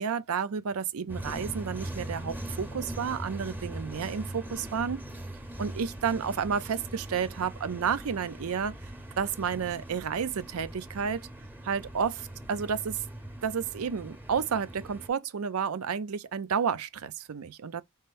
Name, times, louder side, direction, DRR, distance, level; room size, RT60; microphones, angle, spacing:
voice 1, 0.0-5.1 5.6-8.8 9.2-11.2 11.6-13.0 13.4-17.8, right 6 dB, 90° right, 0.5 m, -31 dB
sound 1, 1.1-15.1, right 1 dB, 10° right, 0.8 m, -41 dB
4.2 x 3.7 x 2.5 m
head